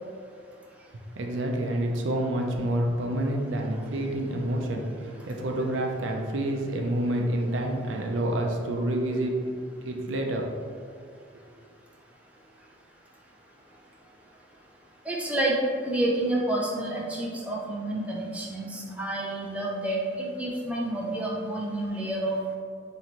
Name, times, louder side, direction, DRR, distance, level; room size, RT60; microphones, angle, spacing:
voice 1, 1.2-9.4 9.8-10.5, right 1 dB, 85° right, 2 dB, 0.5 m, -28 dB
voice 2, 15.1-15.6 15.8-22.6, right 1 dB, 5° right, -4 dB, 0.4 m, -29 dB
3.0 x 3.0 x 4.1 m, 2.1 s
head